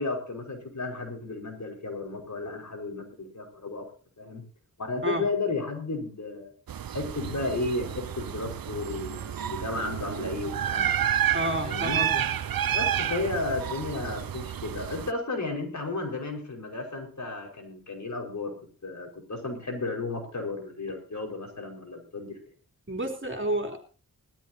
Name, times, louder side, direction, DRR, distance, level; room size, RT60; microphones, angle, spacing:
voice 1, 0.0-3.9 4.2-4.4 4.8-6.5 6.9-11.0 11.6-12.0 12.7-18.6 18.8-22.4, left 3 dB, 55° left, 2 dB, 5.4 m, -33 dB
sound 1, 6.7-15.1, right 10 dB, 90° right, 0.7 m, -30 dB
voice 2, 11.3-12.2 22.9-23.8, right 1 dB, 35° right, 4 dB, 3.6 m, -30 dB
20.5 x 13.5 x 2.9 m, 0.38 s
wide cardioid pair, 80°, 34 cm